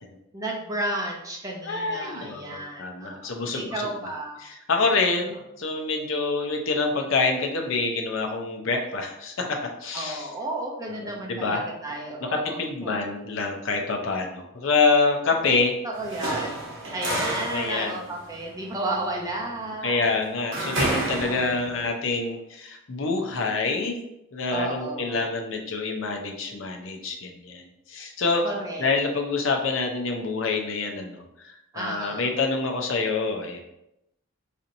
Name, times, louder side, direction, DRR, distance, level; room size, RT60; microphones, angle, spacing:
voice 1, 0.3-4.4 9.9-13.0 15.8-20.1 21.2-21.5 24.5-25.3 28.4-28.9 31.7-32.3, right 1 dB, 15° right, -1 dB, 0.5 m, -33 dB
voice 2, 1.7-3.9 4.4-10.3 11.0-11.6 12.3-15.7 17.1-18.0 19.8-24.0 24.3-28.5 28.8-33.6, left 3 dB, 65° left, 3 dB, 0.5 m, -26 dB
sound 1, 15.9-21.9, right 2 dB, 60° right, 0.9 m, -31 dB
4.1 x 2.8 x 2.6 m, 0.84 s
head